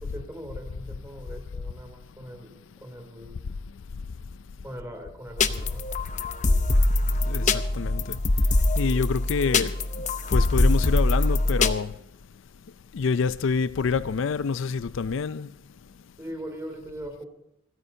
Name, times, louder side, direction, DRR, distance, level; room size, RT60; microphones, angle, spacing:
voice 1, 0.0-2.5 2.8-3.4 4.6-5.8 16.2-17.3, equal, 15° right, 3.0 m, -40 dB
sound 1, 5.4-11.7, left 2 dB, 35° left, 0.7 m, -23 dB
voice 2, 7.3-8.2 8.8-9.7 10.3-11.9 12.9-15.5, left 5 dB, 70° left, 0.4 m, -27 dB
28.5 x 9.6 x 2.7 m
head